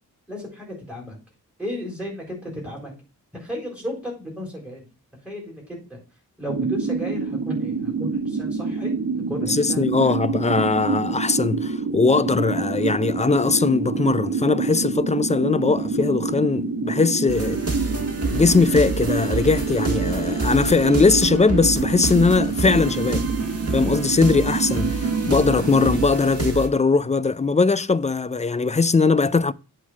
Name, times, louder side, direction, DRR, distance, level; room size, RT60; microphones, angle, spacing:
voice 1, 0.3-1.2 1.6-2.9 3.4-4.9 5.2-6.0 6.4-8.9 9.3-10.2, equal, 5° right, 4.0 m, -34 dB
sound 1, 6.5-26.1, right 4 dB, 75° right, 1.2 m, -26 dB
voice 2, 9.5-17.6 18.3-23.2 23.7-29.5, left 4 dB, 20° left, 0.3 m, -20 dB
sound 2, 17.3-26.7, right 3 dB, 45° right, 1.6 m, -29 dB
8.4 x 3.9 x 6.0 m
wide cardioid pair, 80°, 34 cm